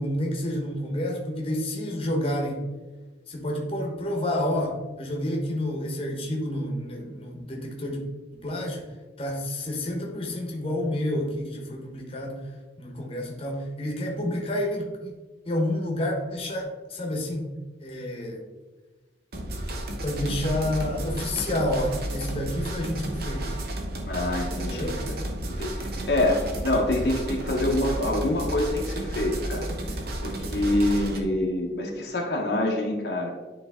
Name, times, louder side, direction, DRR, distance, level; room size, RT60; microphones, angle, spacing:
voice 1, 0.0-2.6 3.3-8.0 8.4-8.8 9.2-12.4 12.8-15.1 15.4-17.5 17.8-18.4 20.0-23.6 24.6-25.0 25.4-25.5, left 1 dB, 30° left, 0 dB, 1.0 m, -29 dB
sound 1, 19.3-31.2, right 1 dB, 55° right, 0.9 m, -32 dB
voice 2, 24.0-29.7 30.2-33.3, left 1 dB, 60° left, 0 dB, 0.9 m, -26 dB
9.3 x 3.2 x 3.5 m, 1.2 s
head